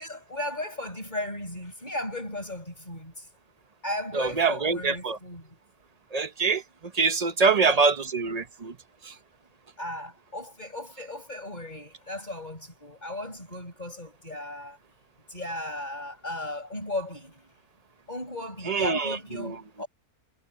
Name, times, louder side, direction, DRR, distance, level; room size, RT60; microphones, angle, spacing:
voice 1, 0.0-3.3 3.8-5.6 7.4-7.9 9.8-14.8 15.3-17.5 18.1-19.9, left 1 dB, 30° left, 7.9 m, -36 dB
voice 2, 4.1-5.2 6.1-6.6 6.9-8.7 18.7-19.5, right 4 dB, 30° right, 0.9 m, -24 dB
omnidirectional pair, 1.6 m